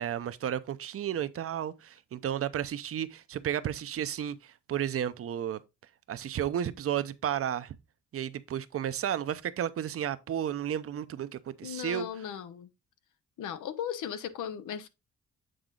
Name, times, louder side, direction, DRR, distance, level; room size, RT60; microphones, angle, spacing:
voice 1, 0.0-5.6 6.1-7.8 8.1-12.1, right 10 dB, 50° right, 0.6 m, -33 dB
voice 2, 11.6-12.7 13.4-14.9, left 9 dB, 90° left, 0.8 m, -37 dB
7.8 x 4.0 x 3.8 m
cardioid pair, 115°, 30 cm